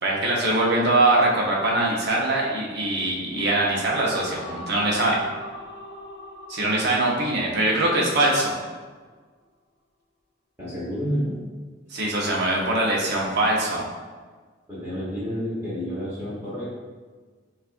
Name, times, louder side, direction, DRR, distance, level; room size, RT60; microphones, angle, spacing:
voice 1, 0.0-5.2 6.5-8.5 11.9-13.9, right 2 dB, 55° right, -3 dB, 0.9 m, -22 dB
sound 1, 3.3-8.6, left 1 dB, 55° left, 0.6 m, -41 dB
voice 2, 10.6-11.3 14.7-16.7, equal, 15° right, -11 dB, 1.2 m, -29 dB
6.2 x 2.4 x 2.5 m, 1.5 s
head